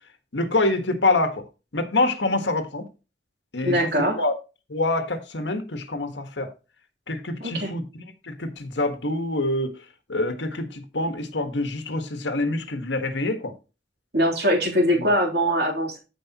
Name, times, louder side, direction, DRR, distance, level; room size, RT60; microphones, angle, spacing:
voice 1, 0.3-1.5 1.7-2.9 3.5-4.3 4.7-6.5 7.1-9.7 10.1-13.5 14.9-15.1, left 2 dB, 85° left, 1.5 m, -26 dB
voice 2, 3.6-4.1 7.4-7.7 14.1-16.0, equal, 65° right, 3.2 m, -22 dB
14.0 x 5.0 x 2.9 m
head